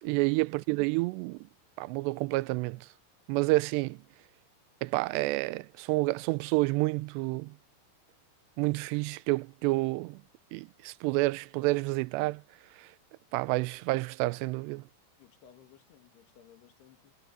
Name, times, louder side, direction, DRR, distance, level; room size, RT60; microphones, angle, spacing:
voice 1, 0.0-1.5 1.8-2.9 3.3-4.0 4.8-7.6 8.6-10.2 10.5-12.4 12.8-12.9 13.3-14.9, right 22 dB, 90° right, 2.7 m, -29 dB
voice 2, 15.2-17.2, left 10 dB, 75° left, 4.0 m, -58 dB
omnidirectional pair, 4.8 m